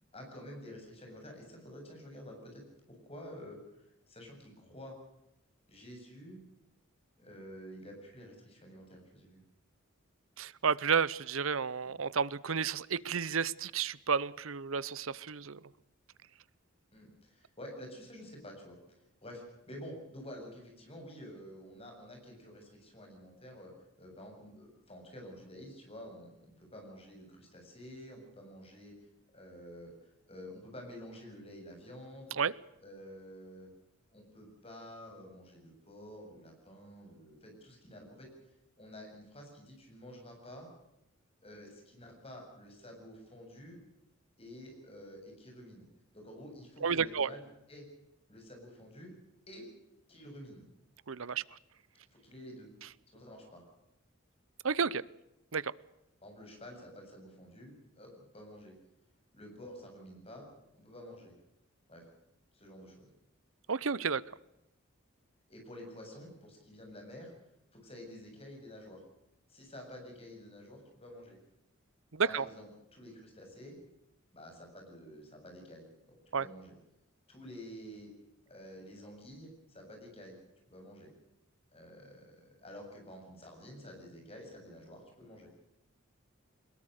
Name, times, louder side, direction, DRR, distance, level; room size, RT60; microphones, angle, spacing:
voice 1, 0.1-3.6 4.1-4.9 5.7-6.4 7.2-9.4 11.8-12.0 16.9-23.7 24.0-28.9 29.3-32.3 32.8-33.7 34.1-38.3 38.8-40.7 41.4-43.8 44.4-45.8 46.1-47.4 47.7-47.9 48.3-49.1 49.5-49.7 50.1-50.6 52.1-52.7 53.1-53.6 56.2-58.7 59.3-61.3 61.9-62.1 62.5-63.1 65.5-67.3 67.7-69.0 69.5-71.4 72.2-73.8 74.3-76.8 77.3-78.1 78.5-80.4 80.7-81.1 81.7-85.5, equal, 30° left, 2 dB, 7.6 m, -50 dB
voice 2, 10.4-15.6 32.4-32.5 46.8-47.3 51.1-51.6 54.6-55.0 55.5-55.7 63.7-64.2 72.1-72.4 76.3-76.5, right 6 dB, 80° right, 20 dB, 0.8 m, -31 dB
22.5 x 21.0 x 6.6 m, 0.85 s
head